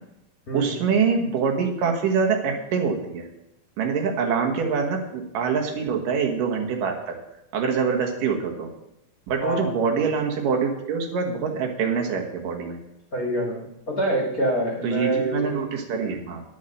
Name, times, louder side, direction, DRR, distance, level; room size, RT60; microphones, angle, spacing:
voice 1, 0.5-3.3 3.8-7.2 7.5-8.7 9.3-12.8 14.8-16.4, right 5 dB, 75° right, 2 dB, 3.0 m, -25 dB
voice 2, 13.1-15.5, right 1 dB, 30° left, -2 dB, 2.0 m, -26 dB
10.5 x 8.4 x 6.5 m, 0.85 s
omnidirectional pair, 3.9 m